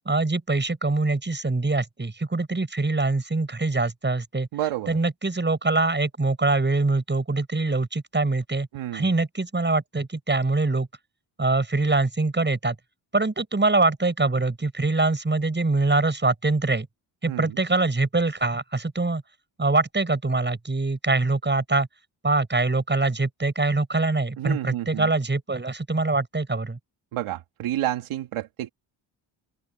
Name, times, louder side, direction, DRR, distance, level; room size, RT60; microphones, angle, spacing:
voice 1, 0.1-4.5 4.9-8.7 8.9-10.9 11.4-12.8 13.1-16.9 17.2-19.2 19.6-21.9 22.2-26.8, right 3 dB, 20° right, 7.1 m, -24 dB
voice 2, 4.5-5.0 8.7-9.1 17.3-17.5 24.4-25.1 27.1-28.7, right 13 dB, 85° right, 2.7 m, -30 dB
open air
cardioid pair, 70°, 48 cm